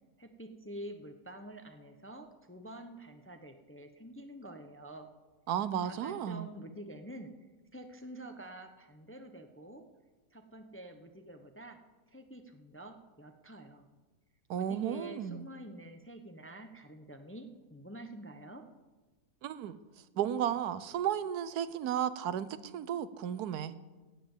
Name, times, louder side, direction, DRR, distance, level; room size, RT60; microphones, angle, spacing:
voice 1, 0.2-5.1 5.8-7.3 7.7-9.8 10.3-11.8 12.1-13.9 14.5-18.6, right 1 dB, 10° left, 6 dB, 0.6 m, -47 dB
voice 2, 5.5-6.5 14.5-15.5 19.4-19.8 20.1-23.7, right 9 dB, 85° right, 15 dB, 1.2 m, -34 dB
17.0 x 7.6 x 7.3 m, 1.2 s
omnidirectional pair, 1.6 m